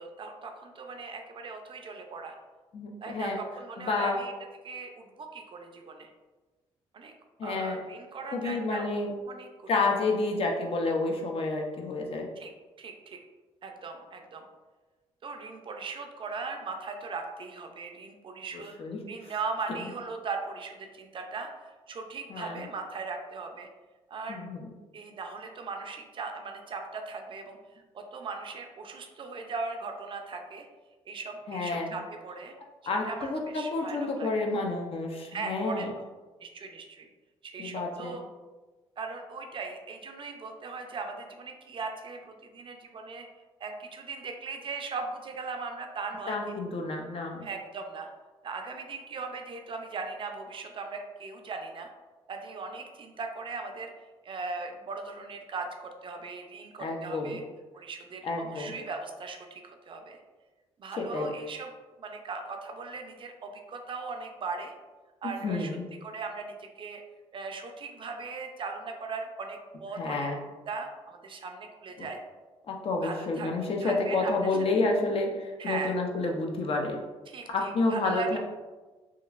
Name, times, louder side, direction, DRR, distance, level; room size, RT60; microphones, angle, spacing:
voice 1, 0.0-2.3 3.0-4.3 4.6-6.1 6.9-7.1 7.4-8.9 9.2-9.7 12.4-12.5 12.8-13.2 13.6-14.4 15.2-18.8 19.1-23.7 24.1-24.5 24.9-30.7 31.1-32.5 33.0-34.3 35.3-35.8 36.4-37.1 37.4-38.2 39.0-43.3 43.6-46.4 47.4-48.1 48.4-51.9 52.3-53.9 54.2-57.4 57.7-60.2 60.8-61.7 62.0-64.7 65.2-65.7 66.0-67.0 67.3-70.3 70.7-72.2 73.0-73.5 73.8-74.5 75.6-75.9 77.3-78.4, right 4 dB, 45° right, 4 dB, 0.4 m, -39 dB
voice 2, 2.7-3.4 3.8-4.2 7.4-7.8 8.3-9.1 9.7-12.3 18.8-19.0 22.3-22.7 24.3-24.7 31.5-31.9 32.8-35.9 37.6-38.2 46.3-47.5 56.8-57.4 58.2-58.7 61.0-61.3 65.4-65.9 69.9-70.4 72.0-72.1 72.7-77.0 77.5-78.4, left 3 dB, 50° left, 1 dB, 0.5 m, -29 dB
2.9 x 2.4 x 2.3 m, 1.2 s
cardioid pair, 75°, 12 cm